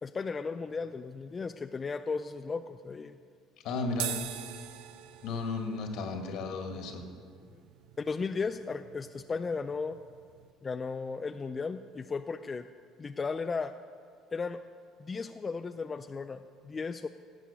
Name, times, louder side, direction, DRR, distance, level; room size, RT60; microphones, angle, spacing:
voice 1, 0.0-3.1 7.5-7.6 8.0-10.0 10.6-12.7 13.0-13.7 14.3-14.6 15.0-17.1, left 4 dB, 30° left, 8 dB, 0.4 m, -35 dB
voice 2, 3.6-4.2 5.2-7.0, left 3 dB, 70° left, 4 dB, 1.9 m, -34 dB
sound 1, 3.9-10.5, right 11 dB, 85° right, 0.6 m, -44 dB
12.5 x 7.9 x 8.4 m, 2.1 s
supercardioid pair, 100°, 0 cm